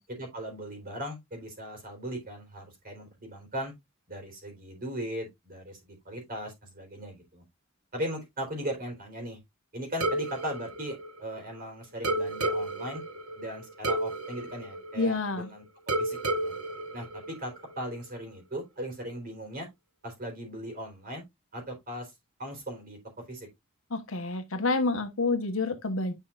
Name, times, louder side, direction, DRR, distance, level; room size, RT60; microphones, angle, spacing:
voice 1, 0.1-3.7 4.1-7.4 7.9-9.4 9.7-13.0 13.4-15.6 16.0-16.5 16.9-19.7 20.0-21.2 21.5-22.1 22.4-23.0 23.3-23.5, equal, 40° right, 3.9 m, -38 dB
sound 1, 10.0-11.6 12.0-15.4 15.9-17.8, right 1 dB, 85° right, 1.5 m, -32 dB
voice 2, 15.0-15.5 23.9-26.1, left 3 dB, 65° left, 1.2 m, -28 dB
10.0 x 5.5 x 2.4 m
head